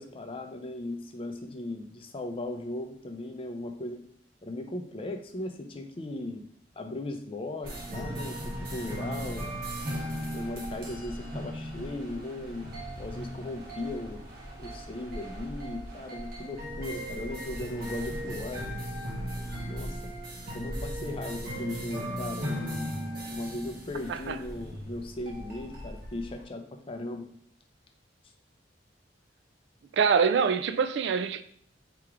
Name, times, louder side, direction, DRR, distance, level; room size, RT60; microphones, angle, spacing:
voice 1, 0.0-4.0 4.4-6.5 6.8-9.5 10.3-14.2 14.6-18.6 19.6-20.1 20.5-22.9 23.3-27.3, left 2 dB, 30° left, 0.5 m, -37 dB
sound 1, 7.6-26.4, equal, 55° right, 1.2 m, -37 dB
voice 2, 29.9-31.4, right 6 dB, 70° right, 0.3 m, -25 dB
3.5 x 2.9 x 4.8 m
head